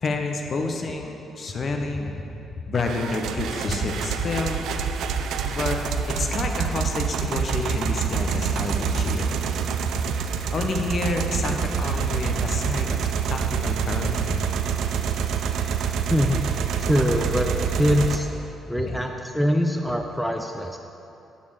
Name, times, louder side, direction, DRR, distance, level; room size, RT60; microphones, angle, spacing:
voice 1, 0.0-2.2 2.7-4.7 5.5-5.8 6.2-9.3 10.5-13.0 13.3-14.5 18.9-19.0, left 3 dB, 45° left, 3 dB, 0.7 m, -29 dB
sound 1, 2.9-18.2, right 7 dB, 80° right, 0.4 m, -26 dB
voice 2, 16.1-16.4 16.8-18.3 18.7-20.8, equal, ahead, 3 dB, 0.4 m, -23 dB
7.2 x 4.1 x 6.4 m, 2.8 s
cardioid pair, 90°, 0 cm